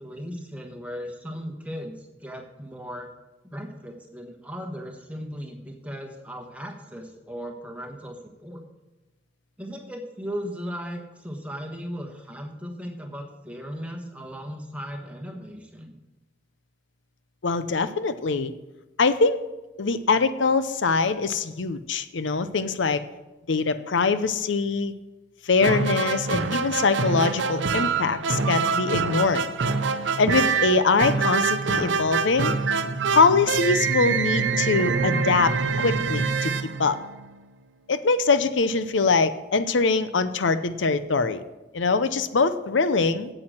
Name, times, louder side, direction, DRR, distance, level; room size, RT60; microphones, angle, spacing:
voice 1, 0.0-3.1 3.4-8.6 9.6-16.0, equal, 5° right, 3 dB, 1.3 m, -37 dB
voice 2, 17.4-18.5 19.0-19.4 19.8-23.0 23.5-24.9 25.5-29.4 30.2-32.5 33.1-36.5 36.8-37.0 37.9-41.4 41.7-43.3, left 4 dB, 85° left, 12 dB, 0.7 m, -23 dB
sound 1, 25.6-37.5, right 5 dB, 90° right, 0.7 m, -25 dB
8.7 x 7.8 x 7.8 m, 1.1 s
head